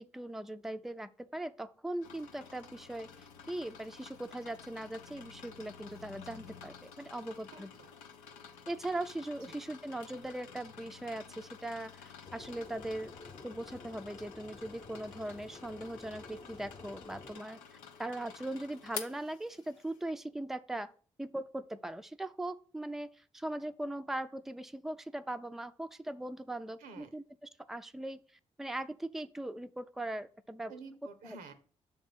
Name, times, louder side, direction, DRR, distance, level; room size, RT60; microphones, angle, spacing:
voice 1, 0.0-7.7 8.7-13.1 13.4-20.9 21.2-28.2 28.6-30.8 31.2-31.4, right 1 dB, 5° right, 9 dB, 0.5 m, -40 dB
sound 1, 2.0-20.0, left 7 dB, 90° left, 0.6 m, -51 dB
voice 2, 7.5-7.9 9.5-9.6 26.8-27.1 30.7-31.5, right 4 dB, 85° right, 9 dB, 0.8 m, -50 dB
sound 2, 12.3-17.4, left 3 dB, 35° left, 0.9 m, -51 dB
6.4 x 3.6 x 5.9 m, 0.41 s
hypercardioid pair, 45°, 14 cm